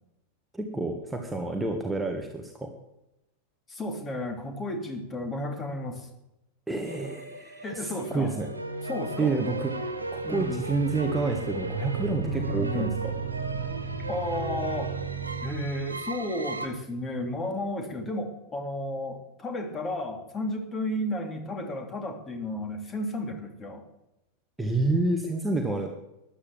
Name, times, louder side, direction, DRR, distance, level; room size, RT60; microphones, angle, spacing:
voice 1, 0.5-2.7 6.7-8.5 9.2-9.7 10.1-12.9 24.6-25.9, right 2 dB, 5° right, 2 dB, 1.6 m, -29 dB
voice 2, 3.7-6.1 7.6-8.3 8.8-9.4 10.2-10.6 12.2-12.9 14.1-14.9 15.4-23.8, left 1 dB, 20° left, 4 dB, 2.9 m, -33 dB
sound 1, 6.8-16.7, right 4 dB, 80° right, 1.8 m, -34 dB
13.5 x 10.0 x 7.5 m, 0.92 s
figure-of-eight pair, 90°, 0 cm